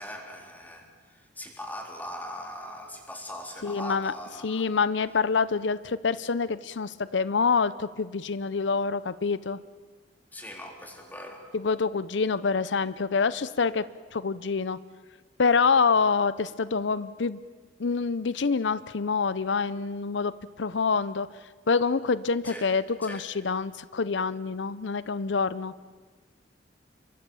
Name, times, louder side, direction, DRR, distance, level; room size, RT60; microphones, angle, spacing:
voice 1, 0.0-4.7 10.3-11.4 22.4-22.7 23.0-23.3, left 1 dB, 10° left, 2 dB, 3.8 m, -40 dB
voice 2, 3.6-4.1 4.4-9.6 11.5-13.8 14.1-14.8 15.4-17.4 17.8-20.3 20.6-21.3 21.7-25.7, left 5 dB, 75° left, 17 dB, 0.6 m, -26 dB
27.5 x 23.5 x 7.0 m, 1.4 s
head